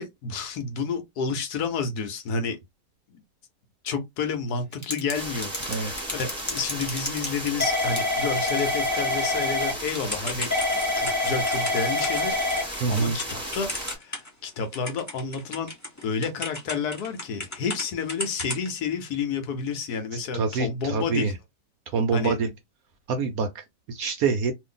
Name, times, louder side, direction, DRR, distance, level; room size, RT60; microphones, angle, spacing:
voice 1, 0.0-2.6 3.1-3.2 3.8-10.5 10.9-15.7 16.0-21.3 22.1-22.4, left 5 dB, 70° left, 1.1 m, -30 dB
Typing / Telephone, 4.7-5.1 5.4-14.4 14.7-17.8 18.1-18.7, left 2 dB, 20° left, 0.5 m, -27 dB
sound 1, 5.1-13.9, equal, 5° right, 1.1 m, -35 dB
voice 2, 12.8-13.2 20.3-21.3 21.9-22.5 23.1-24.5, right 5 dB, 70° right, 0.9 m, -26 dB
2.7 x 2.5 x 3.7 m
omnidirectional pair, 1.9 m